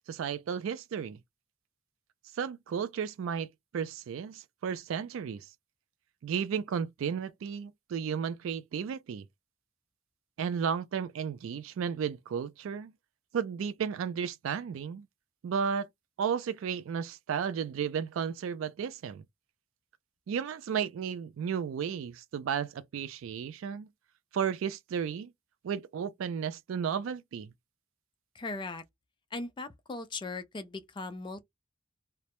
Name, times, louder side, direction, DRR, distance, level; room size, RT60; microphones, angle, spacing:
voice 1, 0.1-1.2 2.3-3.5 3.7-5.5 6.2-9.2 10.4-12.9 13.3-15.1 15.4-15.9 16.2-19.2 20.3-23.9 24.3-25.3 25.6-27.5, right 7 dB, 70° right, 0.3 m, -33 dB
voice 2, 28.3-28.8 29.3-31.4, left 3 dB, 25° left, 0.3 m, -38 dB
2.2 x 2.0 x 2.8 m
head